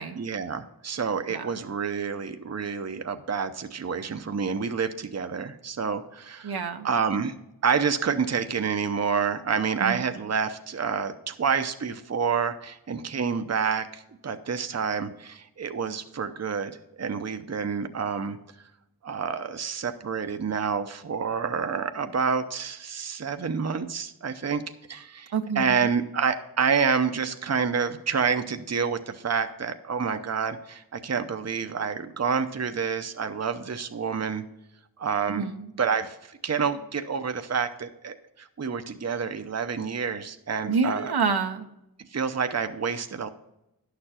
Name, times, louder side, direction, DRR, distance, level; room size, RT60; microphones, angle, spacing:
voice 1, 0.2-6.5 6.8-7.3 7.6-18.4 19.0-24.6 24.9-34.4 35.0-35.4 35.8-41.1 42.1-43.3, right 6 dB, 40° right, 8 dB, 0.7 m, -28 dB
voice 2, 6.4-6.9 9.8-10.2 25.3-26.0 35.3-35.7 40.7-41.7, right 5 dB, 80° right, 6 dB, 0.8 m, -28 dB
11.0 x 6.8 x 4.3 m, 0.87 s
wide cardioid pair, 60°, 38 cm